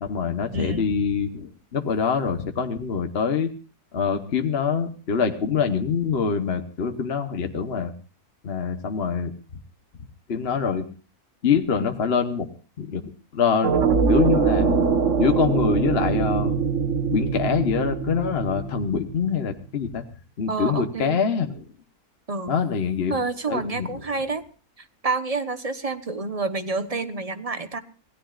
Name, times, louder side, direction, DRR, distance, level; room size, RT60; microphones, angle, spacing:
voice 1, 0.0-3.5 3.9-7.9 8.4-9.3 10.3-10.8 11.4-12.5 12.8-13.0 13.3-13.8 14.1-14.8 15.2-16.5 17.1-20.0 20.4-21.6 22.5-23.1 23.5-23.9, left 6 dB, 45° left, 6 dB, 1.2 m, -24 dB
voice 2, 0.5-0.9 20.5-21.2 22.3-22.6 23.1-24.4 24.8-27.8, right 3 dB, 25° right, 10 dB, 1.0 m, -28 dB
sound 1, 13.6-19.5, right 6 dB, 55° right, 1.6 m, -23 dB
26.5 x 17.5 x 2.5 m, 0.35 s
omnidirectional pair, 1.6 m